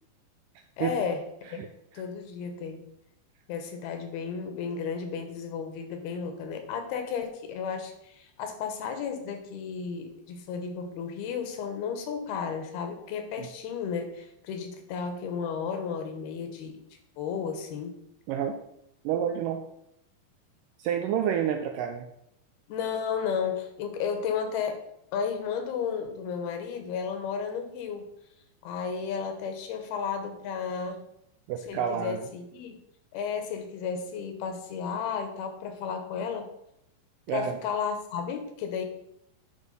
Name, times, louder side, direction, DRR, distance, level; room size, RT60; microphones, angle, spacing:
voice 1, 0.8-1.2 1.5-1.6 1.9-2.9 3.5-16.8 17.2-17.9 22.7-24.8 25.1-28.0 28.6-31.0 31.7-32.8 33.1-36.5 37.3-38.9, left 6 dB, 85° left, 6 dB, 3.0 m, -33 dB
voice 2, 18.3-18.6 19.0-19.6 20.8-22.1 31.5-32.3 37.3-37.6, right 8 dB, 90° right, 4 dB, 1.9 m, -29 dB
10.5 x 3.5 x 5.4 m, 0.76 s
omnidirectional pair, 4.4 m